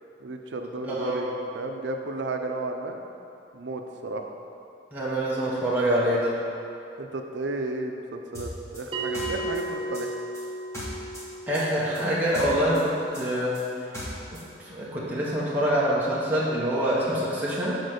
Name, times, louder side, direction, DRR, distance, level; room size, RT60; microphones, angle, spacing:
voice 1, 0.2-3.0 3.5-4.3 7.0-10.1, right 2 dB, 80° right, 4 dB, 0.6 m, -33 dB
voice 2, 0.9-1.2 4.9-6.4 11.5-13.5 14.3-17.8, equal, 10° right, -8 dB, 1.1 m, -25 dB
sound 1, 8.3-11.3 11.5-14.5, equal, 15° left, 1.8 m, -38 dB
Bell, 8.9-14.0, right 2 dB, 30° right, 0.8 m, -36 dB
6.5 x 4.4 x 6.5 m, 2.6 s
head